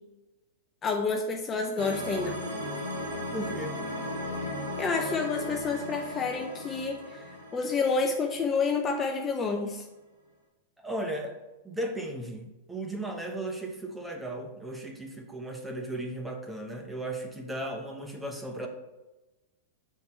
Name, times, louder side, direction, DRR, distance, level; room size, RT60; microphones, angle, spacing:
voice 1, 0.8-2.4 4.8-9.8, left 4 dB, 20° left, 3 dB, 0.6 m, -29 dB
sound 1, 1.8-8.8, left 1 dB, 90° right, 2.4 m, -36 dB
voice 2, 3.3-3.8 10.8-11.4 11.6-18.7, right 1 dB, 5° right, 3 dB, 0.9 m, -36 dB
6.5 x 4.6 x 4.2 m, 1.1 s
hypercardioid pair, 135°, 0 cm